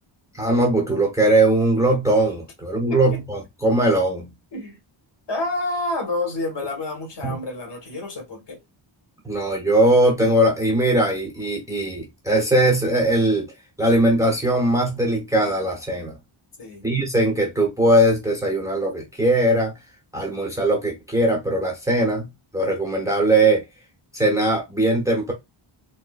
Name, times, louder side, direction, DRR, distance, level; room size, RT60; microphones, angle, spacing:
voice 1, 0.3-4.3 7.2-7.4 9.2-13.5 13.8-16.2 16.8-19.7 20.1-22.3 22.5-23.6 24.1-25.3, right 1 dB, 5° right, 1.0 m, -20 dB
voice 2, 2.9-3.2 4.5-4.8 5.3-8.6 16.6-16.9, left 2 dB, 55° left, 1.6 m, -29 dB
4.3 x 2.1 x 2.4 m
wide cardioid pair, 155°, 49 cm